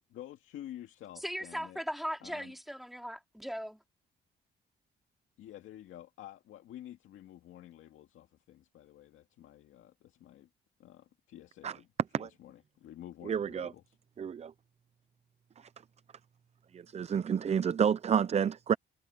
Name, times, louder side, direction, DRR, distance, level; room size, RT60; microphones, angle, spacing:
voice 1, 0.1-1.8 2.2-2.5 5.4-10.5 10.8-11.9 12.2-14.0, left 12 dB, 80° left, 2.1 m, -50 dB
voice 2, 1.2-3.8, equal, ahead, 2.7 m, -38 dB
voice 3, 13.3-13.7 14.2-14.5 16.7-18.8, right 7 dB, 35° right, 0.5 m, -29 dB
cardioid pair, 90°, 20 cm